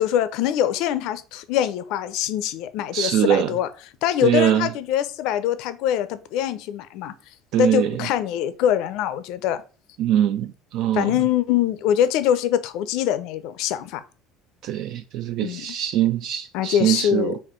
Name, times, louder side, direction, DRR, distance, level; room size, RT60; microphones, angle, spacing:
voice 1, 0.0-3.7 4.0-7.1 7.6-9.6 10.9-14.0 15.4-15.8 16.5-17.4, left 10 dB, 65° left, 0.5 m, -23 dB
voice 2, 2.9-3.5 4.2-4.7 7.5-7.9 10.0-11.1 14.6-17.4, right 11 dB, 60° right, 0.3 m, -22 dB
4.2 x 2.5 x 4.4 m
cardioid pair, 140°, 0 cm